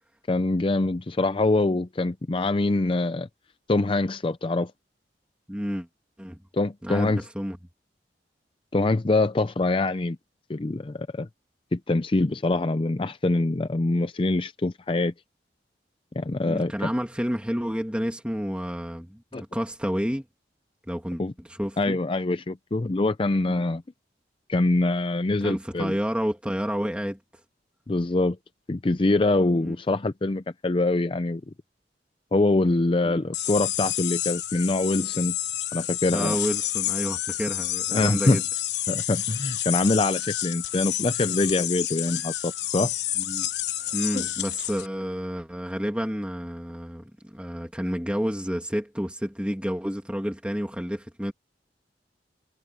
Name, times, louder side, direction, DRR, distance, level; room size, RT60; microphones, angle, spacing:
voice 1, 0.3-3.3 3.7-4.7 6.5-7.2 8.7-10.2 10.5-11.3 11.7-15.1 16.2-16.9 19.3-19.4 21.2-21.3 21.8-23.8 24.5-26.0 27.9-28.4 28.7-31.4 32.3-35.4 35.7-36.4 37.9-38.4 38.9-42.9 44.1-44.2, left 2 dB, 30° left, 0.5 m, -24 dB
voice 2, 5.5-5.9 6.2-6.4 6.8-7.6 16.4-20.2 20.9-22.0 23.4-23.6 25.4-27.2 29.6-29.8 33.0-33.2 36.1-38.4 43.2-43.5 43.9-51.3, equal, 5° right, 2.5 m, -30 dB
sound 1, 33.3-44.9, left 13 dB, 80° left, 1.1 m, -29 dB
head